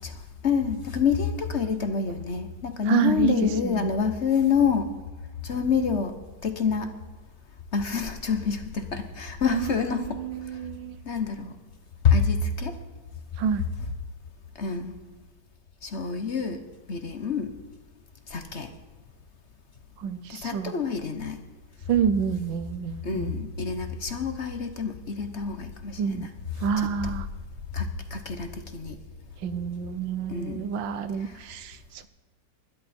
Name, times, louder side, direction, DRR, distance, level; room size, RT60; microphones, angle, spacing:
voice 1, 0.0-4.9 5.4-6.2 6.4-6.9 7.7-10.2 11.0-11.6 12.0-12.8 14.6-15.0 15.8-17.5 18.3-18.7 20.3-21.4 23.0-26.3 26.6-27.1 27.7-29.0 30.3-30.6 31.2-31.4, left 6 dB, 45° left, 8 dB, 1.1 m, -27 dB
voice 2, 2.9-3.3 3.6-3.9 9.5-11.0 13.4-13.6 20.0-20.7 21.9-23.4 26.0-26.3 26.6-27.3 29.4-32.1, right 7 dB, 90° right, 13 dB, 1.6 m, -28 dB
21.5 x 12.5 x 4.3 m, 1.3 s
omnidirectional pair, 2.0 m